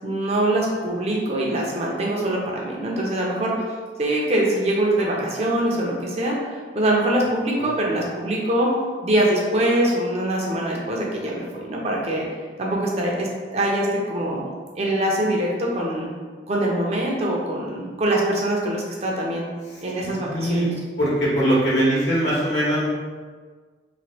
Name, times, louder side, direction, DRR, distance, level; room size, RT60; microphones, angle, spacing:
voice 1, 0.0-3.6 4.0-8.7 9.0-12.3 12.6-14.4 14.8-16.1 16.5-19.5 19.8-20.6, right 1 dB, 35° right, -2 dB, 0.5 m, -23 dB
voice 2, 19.7-20.7 21.0-22.9, equal, 80° left, -8 dB, 1.3 m, -22 dB
3.0 x 2.5 x 2.7 m, 1.5 s
head